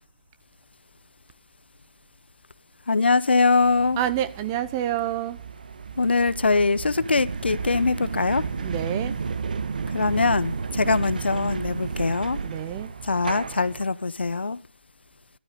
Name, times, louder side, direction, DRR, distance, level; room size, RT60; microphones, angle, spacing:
voice 1, 2.9-4.0 6.0-8.5 9.9-12.4 13.0-14.6, left 3 dB, 70° left, 0.9 m, -22 dB
sound 1, 3.6-13.8, right 5 dB, 50° right, 1.2 m, -32 dB
voice 2, 4.0-5.4 8.6-9.1 12.4-12.9, right 12 dB, 15° right, 0.6 m, -28 dB
13.0 x 12.5 x 5.1 m
figure-of-eight pair, 160°, 6 cm